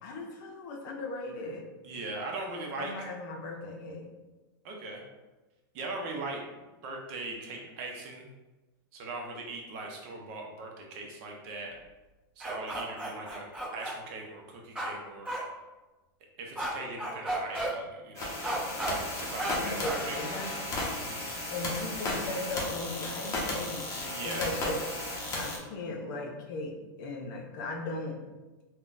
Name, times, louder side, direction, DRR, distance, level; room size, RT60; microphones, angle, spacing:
voice 1, 0.0-1.7 2.8-4.1 19.6-20.6 21.5-23.9 24.2-25.1 25.3-28.2, left 2 dB, 60° left, 2 dB, 0.6 m, -37 dB
voice 2, 1.8-3.1 4.6-5.0 5.7-6.5 6.8-8.3 8.9-11.7 12.4-13.4 13.7-15.3 16.4-18.4 18.9-20.2 21.0-21.4 24.0-24.4, right 3 dB, 50° right, 0 dB, 0.7 m, -40 dB
sound 1, 12.4-13.9 14.8-14.9 15.3-15.4 16.6-16.7 17.0-17.7 18.4-18.9 19.4-19.5 19.8-20.0, right 1 dB, 10° right, 0.9 m, -33 dB
sound 2, 18.1-25.6, left 2 dB, 25° left, 0.8 m, -35 dB
3.6 x 2.2 x 2.5 m, 1.1 s
hypercardioid pair, 130°, 12 cm